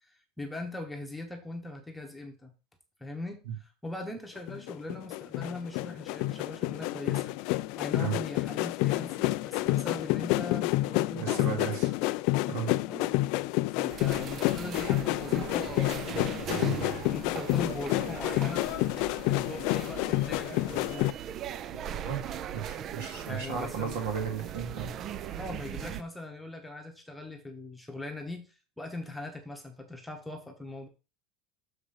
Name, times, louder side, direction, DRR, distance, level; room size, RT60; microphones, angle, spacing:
voice 1, 0.0-2.5 3.0-7.3 7.7-11.6 12.8-13.2 13.8-16.1 17.0-18.6 19.3-21.2 23.3-24.0 25.4-28.4 28.8-30.9, left 2 dB, 5° left, 2 dB, 1.1 m, -40 dB
sound 1, 4.4-21.1, left 19 dB, 55° left, 0.3 m, -29 dB
voice 2, 11.1-11.9 12.5-12.7 22.0-22.2 22.5-25.0, right 7 dB, 75° right, 2 dB, 3.0 m, -34 dB
sound 2, 13.9-26.0, right 9 dB, 30° right, 0.4 m, -39 dB
6.6 x 4.9 x 5.7 m, 0.32 s
supercardioid pair, 160°, 0 cm